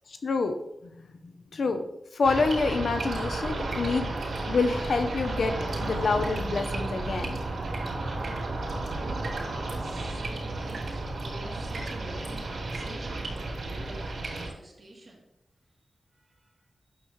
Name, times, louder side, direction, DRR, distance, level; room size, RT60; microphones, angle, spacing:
voice 1, 0.2-0.6 1.2-4.2 4.5-7.4, left 4 dB, 70° left, 7 dB, 0.7 m, -27 dB
sound 1, 2.2-14.5, right 2 dB, 90° right, 2.7 m, -33 dB
voice 2, 9.0-15.2 16.1-16.6, right 1 dB, 40° right, -4 dB, 2.8 m, -46 dB
9.3 x 7.0 x 3.2 m, 0.82 s
wide cardioid pair, 85°, 0 cm